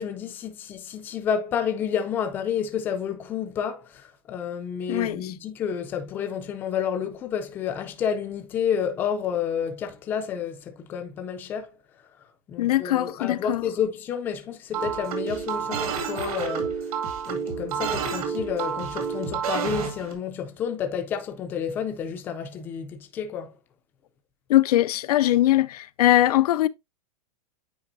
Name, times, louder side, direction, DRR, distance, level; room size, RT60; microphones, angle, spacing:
voice 1, 0.0-11.7 12.5-16.9 17.3-23.5, left 7 dB, 10° left, 0.4 m, -30 dB
voice 2, 4.9-5.3 12.6-13.6 24.5-26.7, left 14 dB, 85° left, 0.5 m, -21 dB
sound 1, 14.7-20.1, right 6 dB, 70° right, 2.0 m, -29 dB
8.9 x 4.6 x 2.5 m
supercardioid pair, 180°, 19 cm